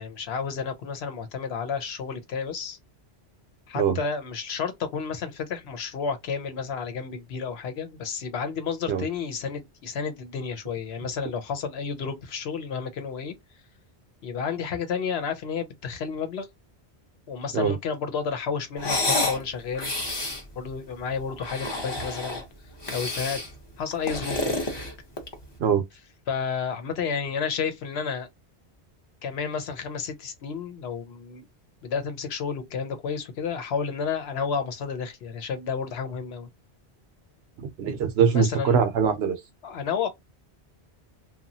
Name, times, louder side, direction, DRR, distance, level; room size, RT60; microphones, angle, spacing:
voice 1, 0.0-2.8 3.7-13.4 14.2-16.5 17.3-19.9 20.6-22.5 22.9-23.4 23.8-24.6 26.3-28.3 29.2-31.4 31.8-36.5 38.3-38.8 39.6-40.1, left 6 dB, 70° left, 0.9 m, -31 dB
sound 1, 18.8-19.4 19.7-20.4 21.3-22.4 22.8-23.5 23.9-25.4, left 2 dB, 25° left, 0.7 m, -29 dB
voice 2, 37.6-39.4, right 6 dB, 75° right, 0.8 m, -22 dB
2.9 x 2.3 x 2.7 m
omnidirectional pair, 1.1 m